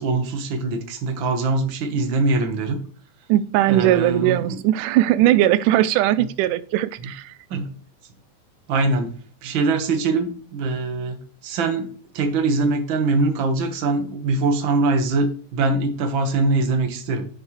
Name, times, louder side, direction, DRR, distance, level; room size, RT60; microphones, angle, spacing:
voice 1, 0.0-2.8 3.7-4.6 6.2-6.3 7.5-7.7 8.7-9.1 9.4-17.3, right 3 dB, 50° right, 5 dB, 1.8 m, -23 dB
voice 2, 3.3-7.3, right 14 dB, 85° right, 15 dB, 2.1 m, -19 dB
12.5 x 6.4 x 3.2 m, 0.44 s
omnidirectional pair, 3.6 m